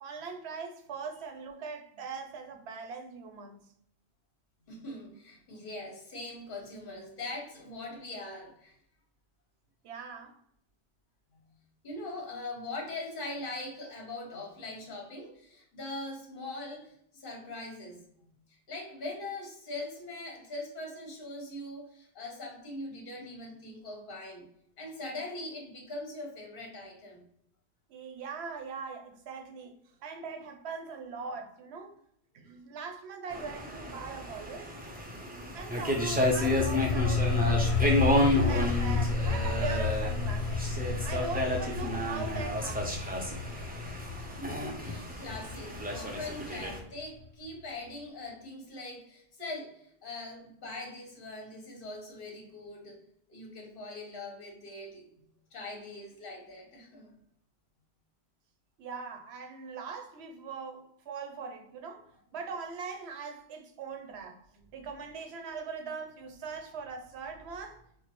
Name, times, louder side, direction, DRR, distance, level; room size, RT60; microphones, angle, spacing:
voice 1, 0.0-3.7 9.8-10.4 27.9-32.0 32.3-34.7 35.2-37.9 38.4-40.7 41.0-43.0 58.8-64.4 64.7-67.8, right 5 dB, 85° right, 0.8 m, -41 dB
voice 2, 4.7-8.8 11.3-11.4 11.8-18.0 18.5-24.5 24.8-27.2 44.4-53.0 53.3-55.1 55.5-57.1 64.6-64.7, left 2 dB, 55° left, 1.2 m, -42 dB
sound 1, 33.3-46.8, left 1 dB, 15° right, 0.4 m, -31 dB
sound 2, 35.7-47.2, left 4 dB, 85° left, 0.8 m, -31 dB
4.6 x 2.0 x 2.9 m
omnidirectional pair, 1.1 m